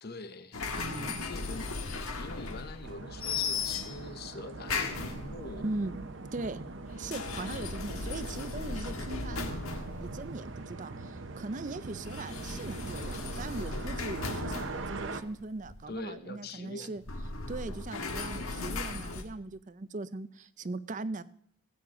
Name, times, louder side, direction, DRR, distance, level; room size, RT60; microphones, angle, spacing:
voice 1, 0.0-0.6 1.2-5.7 15.9-17.0, left 3 dB, 50° left, 10 dB, 0.9 m, -44 dB
sound 1, 0.5-2.9 3.2-4.1 4.6-5.6 6.8-10.5 11.9-15.9 17.0-19.2, left 4 dB, 85° left, 1.5 m, -37 dB
voice 2, 0.8-1.2 5.6-6.0 6.3-6.6 6.9-17.0 17.5-21.2, right 2 dB, 35° right, 15 dB, 0.5 m, -39 dB
sound 2, 2.8-15.2, right 3 dB, 60° right, 0.9 m, -42 dB
17.5 x 8.6 x 3.8 m, 0.68 s
head